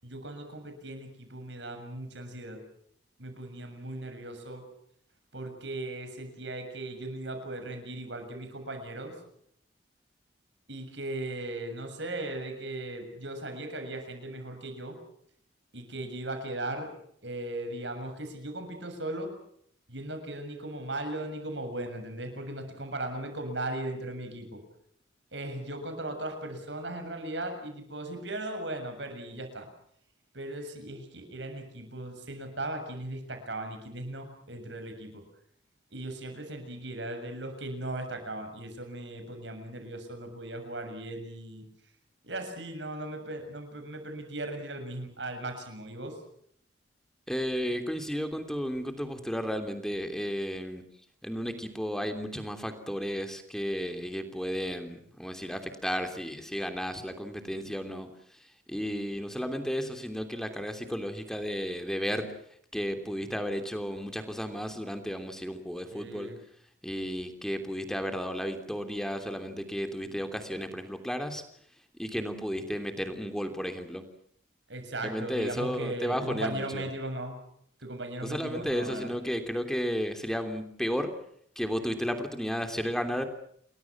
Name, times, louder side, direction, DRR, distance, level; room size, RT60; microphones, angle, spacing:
voice 1, 0.0-2.6 3.2-4.7 5.3-9.2 10.7-15.0 15.7-16.9 17.2-19.3 19.9-24.6 25.3-29.7 30.3-35.2 35.9-41.7 42.2-46.2 65.9-66.4 74.7-77.4 77.8-79.1, right 1 dB, 70° right, 6 dB, 7.0 m, -37 dB
voice 2, 47.3-50.8 51.2-62.3 62.7-66.3 66.8-71.4 72.0-74.0 75.0-76.9 78.2-81.1 81.5-83.3, equal, 5° left, 6 dB, 3.0 m, -33 dB
29.5 x 22.0 x 6.1 m, 0.67 s
head